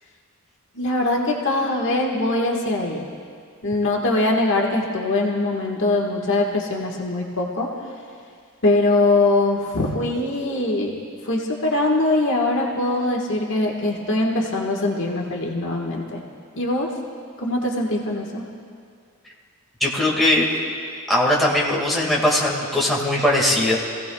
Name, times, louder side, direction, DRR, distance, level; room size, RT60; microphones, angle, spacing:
voice 1, 0.7-3.0 3.6-7.7 8.6-11.0 11.2-16.2 16.5-16.9 17.4-18.4, left 2 dB, 55° left, -1 dB, 1.6 m, -22 dB
voice 2, 19.8-20.5 21.1-23.8, left 1 dB, ahead, -5 dB, 1.9 m, -20 dB
25.0 x 16.5 x 2.3 m, 2.2 s
head